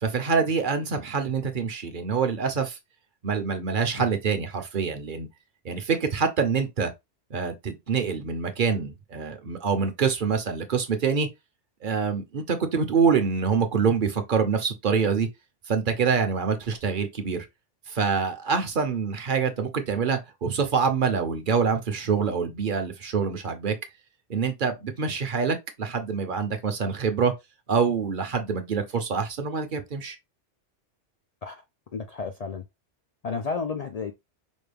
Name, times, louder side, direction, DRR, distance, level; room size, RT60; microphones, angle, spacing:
voice 1, 0.0-2.8 3.2-5.3 5.6-6.9 7.3-11.3 11.8-15.3 15.7-17.5 17.9-23.8 24.3-27.3 27.7-30.2, right 5 dB, 50° right, 0.8 m, -25 dB
voice 2, 31.9-32.6 33.2-34.1, left 5 dB, 75° left, 0.3 m, -32 dB
5.2 x 2.3 x 3.4 m
omnidirectional pair, 1.2 m